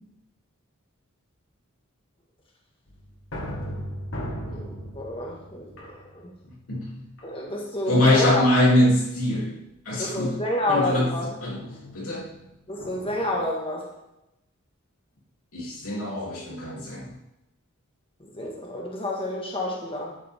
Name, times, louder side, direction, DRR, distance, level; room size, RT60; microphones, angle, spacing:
sound 1, 2.9-6.6 7.2-7.7 8.2-8.6 10.0-13.4, equal, 65° left, 1.9 m, -38 dB
voice 1, 4.5-6.4 7.2-8.5 10.0-11.3 12.7-13.9 18.2-20.1, left 1 dB, 25° left, -2 dB, 1.8 m, -29 dB
voice 2, 6.7-7.0 7.9-9.6 9.8-10.3 10.7-11.1 11.4-11.6 11.9-12.3 15.5-17.1, left 1 dB, 90° left, -4 dB, 3.3 m, -23 dB
11.5 x 8.5 x 3.7 m, 0.89 s
head